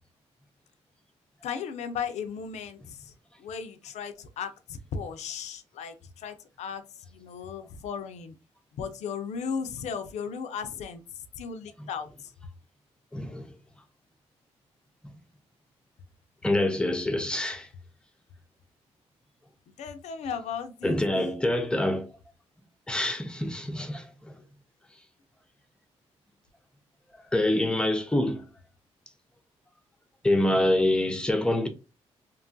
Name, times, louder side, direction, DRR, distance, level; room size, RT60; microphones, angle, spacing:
voice 1, 1.4-3.1 3.4-8.4 8.7-12.3 19.8-21.3, left 6 dB, 75° left, 0.4 m, -36 dB
voice 2, 13.1-13.5 16.4-17.7 20.8-22.1 22.9-24.3 27.3-28.4 30.2-31.7, left 1 dB, 5° left, 0.6 m, -26 dB
2.9 x 2.3 x 2.5 m
cardioid pair, 75°, 12 cm